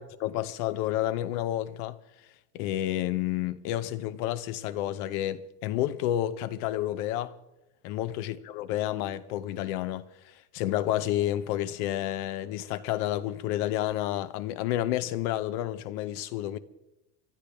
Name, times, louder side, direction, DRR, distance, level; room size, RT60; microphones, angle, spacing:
voice 1, 0.2-2.0 2.5-7.3 7.8-16.6, left 13 dB, 90° left, 0.9 m, -30 dB
25.0 x 12.0 x 3.5 m
supercardioid pair, 115°, 44 cm